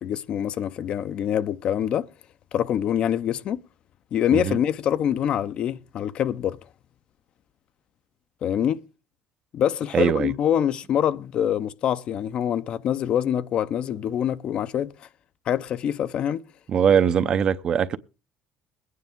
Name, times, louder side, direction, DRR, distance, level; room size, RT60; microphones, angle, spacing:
voice 1, 0.0-2.1 2.5-3.6 4.1-6.6 8.4-8.8 9.5-14.9 15.5-16.4, left 9 dB, 50° left, 0.6 m, -25 dB
voice 2, 9.9-10.3 16.7-18.0, right 8 dB, 45° right, 0.6 m, -21 dB
21.5 x 9.4 x 3.6 m
cardioid pair, 130°, 2 cm